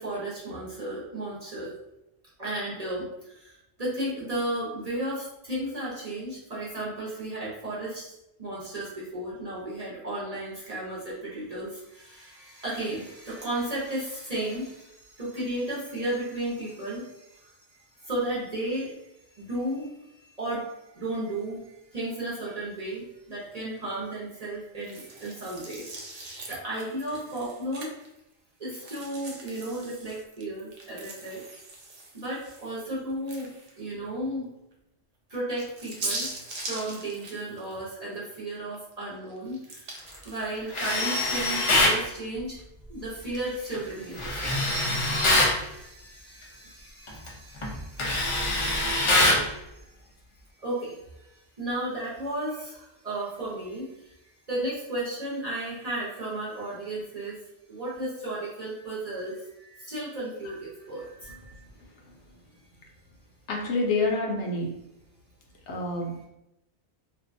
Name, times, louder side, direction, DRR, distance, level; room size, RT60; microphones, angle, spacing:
voice 1, 0.0-1.7 2.4-8.1 8.4-17.5 18.0-19.0 19.3-25.9 26.5-27.9 28.6-31.4 32.1-33.5 33.8-34.5 35.3-36.3 36.6-42.6 42.9-49.9 50.6-57.4 57.7-61.3, right 1 dB, 40° right, -7 dB, 0.7 m, -34 dB
sound 1, 24.8-28.2 28.7-33.9 34.3-34.4 35.3-38.4 38.7-41.4, right 2 dB, 65° right, 0.4 m, -41 dB
Tools, 40.7-42.0 44.2-45.6 47.1-47.3 47.6-49.5, left 2 dB, 55° left, 0.3 m, -23 dB
voice 2, 61.2-61.6 63.5-64.8 65.7-66.3, left 2 dB, 75° left, 1 dB, 0.9 m, -28 dB
2.6 x 2.2 x 2.5 m, 0.86 s
omnidirectional pair, 1.2 m